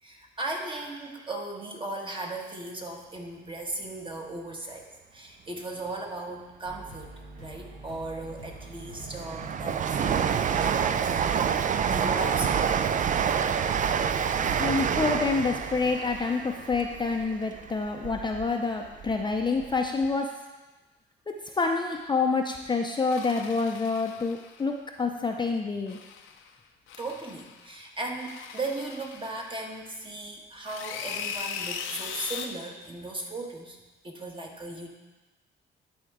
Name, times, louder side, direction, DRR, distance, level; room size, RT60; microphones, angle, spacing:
voice 1, 0.0-9.8 10.5-11.4 11.9-12.7 27.0-33.8 34.0-34.9, right 2 dB, 25° right, 1 dB, 1.3 m, -37 dB
sound 1, 6.6-15.9, right 1 dB, 90° right, 1.6 m, -45 dB
Train, 8.3-18.4 18.9-19.8 20.0-20.1, right 7 dB, 40° right, 0.4 m, -27 dB
voice 2, 14.6-20.3 21.6-26.0, left 4 dB, 25° left, 2 dB, 0.5 m, -27 dB
sound 2, 23.1-24.7 25.9-26.5 26.9-27.7 28.2-29.9 30.7-32.5, left 7 dB, 90° left, 0.6 m, -39 dB
11.5 x 4.4 x 3.7 m, 1.2 s
cardioid pair, 90°, 20 cm